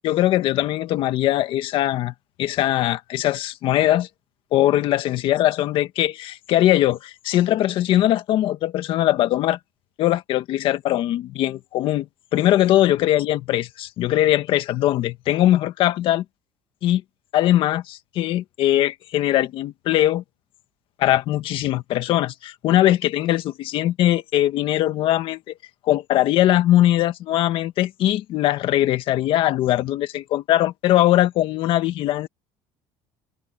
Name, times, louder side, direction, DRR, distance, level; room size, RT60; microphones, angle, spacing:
voice 1, 0.0-2.1 2.4-4.1 4.5-9.6 10.0-16.2 16.8-17.0 17.3-20.2 21.0-25.5 25.9-32.3, left 13 dB, 50° left, 1.6 m, -21 dB
cardioid pair, 150°, 11 cm